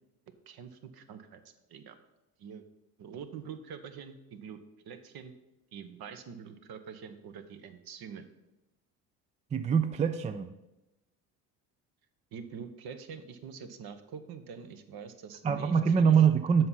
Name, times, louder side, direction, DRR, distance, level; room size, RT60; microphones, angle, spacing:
voice 1, 0.5-1.4 1.7-2.0 2.4-2.6 3.0-4.6 4.8-5.3 5.7-8.3 12.3-16.1, right 6 dB, 50° right, 9 dB, 1.1 m, -45 dB
voice 2, 9.5-10.5 15.4-16.7, right 7 dB, 15° right, 9 dB, 0.4 m, -24 dB
7.7 x 5.8 x 5.6 m, 0.98 s
hypercardioid pair, 70°, 47 cm